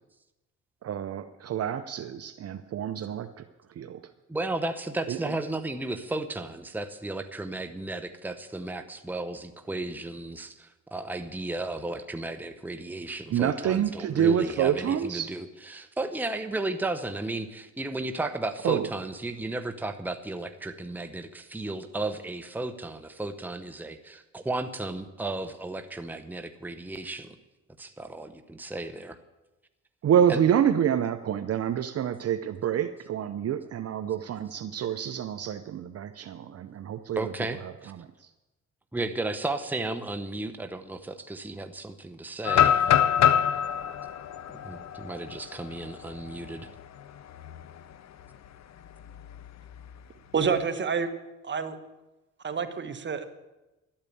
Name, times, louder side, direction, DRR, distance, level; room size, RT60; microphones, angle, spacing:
voice 1, 0.8-3.4 3.8-4.0 5.1-5.3 13.3-15.3 18.6-18.9 30.0-37.3 37.6-37.7 38.0-38.1, right 9 dB, 55° right, 9 dB, 0.7 m, -27 dB
voice 2, 4.3-27.3 27.8-29.2 30.3-30.4 37.2-37.9 38.9-42.9 44.6-46.7, right 2 dB, 5° right, 8 dB, 0.9 m, -34 dB
sound 1, 42.5-46.4 46.8-46.9 47.4-47.7 49.0-49.9, left 9 dB, 60° left, 0.8 m, -25 dB
voice 3, 50.3-51.1 51.4-51.8 52.4-53.2, right 6 dB, 40° right, 8 dB, 1.4 m, -28 dB
12.0 x 8.8 x 8.5 m, 1.0 s
cardioid pair, 90°, 30 cm